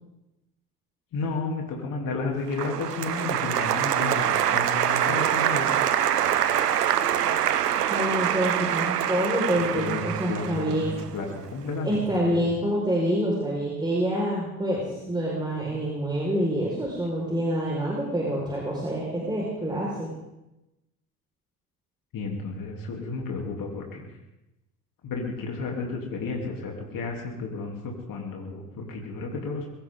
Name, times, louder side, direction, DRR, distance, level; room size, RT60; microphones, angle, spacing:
voice 1, 1.1-5.7 9.5-12.4 22.1-24.1 25.0-29.7, left 3 dB, 45° left, 0 dB, 3.4 m, -32 dB
Applause, 2.5-11.6, right 10 dB, 85° right, 0.9 m, -25 dB
voice 2, 7.9-10.9 11.8-14.8 15.1-20.1, equal, 10° right, -4 dB, 5.2 m, -27 dB
22.5 x 16.5 x 3.9 m, 0.95 s
hypercardioid pair, 65°, 46 cm